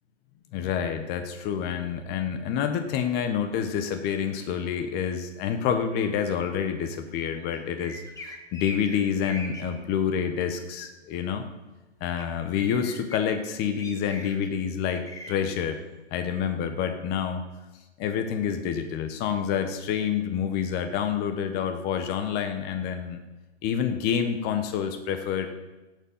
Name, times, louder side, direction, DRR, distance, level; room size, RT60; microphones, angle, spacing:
voice 1, 0.5-11.4 12.0-15.8 16.1-17.4 18.0-23.2 23.6-25.5, left 8 dB, 25° left, 7 dB, 1.4 m, -28 dB
sound 1, 7.8-9.6 12.2-12.3 12.5-13.2 13.8-14.5 14.9-15.3, left 1 dB, 10° left, 1.4 m, -40 dB
17.0 x 7.6 x 5.7 m, 1.1 s
hypercardioid pair, 125°, 35 cm